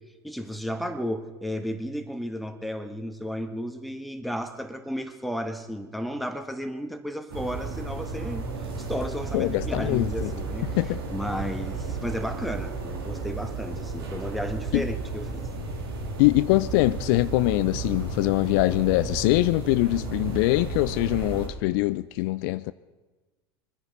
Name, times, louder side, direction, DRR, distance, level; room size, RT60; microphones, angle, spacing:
voice 1, 0.2-8.4 8.8-10.7 11.1-15.5, equal, ahead, 1.7 m, -33 dB
sound 1, 7.3-21.5, right 3 dB, 75° right, 2.9 m, -33 dB
voice 2, 9.3-10.3 10.8-11.0 14.7-14.8 16.2-22.7, left 20 dB, 60° left, 0.4 m, -23 dB
23.5 x 10.0 x 5.5 m
hypercardioid pair, 80°, 12 cm